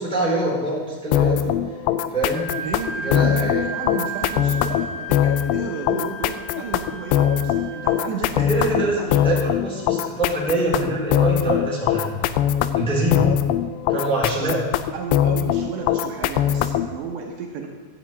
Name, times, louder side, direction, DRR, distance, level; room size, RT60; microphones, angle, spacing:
voice 1, 0.0-1.4 2.1-2.5 3.0-3.6 8.4-12.2 12.7-13.3 13.9-14.6, right 1 dB, ahead, -5 dB, 3.1 m, -24 dB
sound 1, 1.1-17.0, left 10 dB, 90° left, 2.4 m, -21 dB
Wind instrument woodwind instrument, 2.3-8.1, right 2 dB, 25° right, 4.6 m, -34 dB
voice 2, 2.6-9.5 14.4-14.6 14.9-17.7, right 5 dB, 75° right, 1 dB, 3.1 m, -33 dB
12.0 x 8.6 x 9.1 m, 1.4 s
omnidirectional pair, 5.6 m